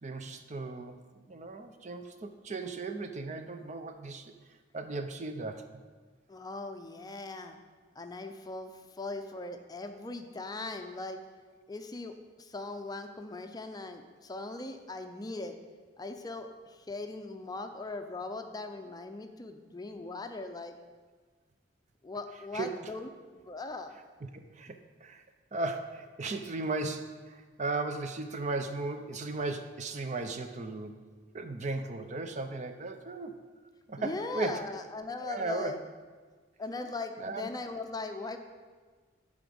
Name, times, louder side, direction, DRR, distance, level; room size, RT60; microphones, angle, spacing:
voice 1, 0.0-1.0 1.3-4.3 4.7-5.6 22.5-22.7 24.3-25.2 25.5-31.0 31.3-33.4 33.9-34.6 35.2-35.7 37.2-37.5, right 3 dB, 40° right, 8 dB, 0.6 m, -36 dB
voice 2, 6.3-7.6 8.0-11.2 11.7-15.6 16.0-20.8 22.0-24.0 34.0-35.8 36.6-38.4, left 3 dB, 20° left, 6 dB, 0.5 m, -39 dB
9.7 x 5.1 x 6.9 m, 1.5 s
head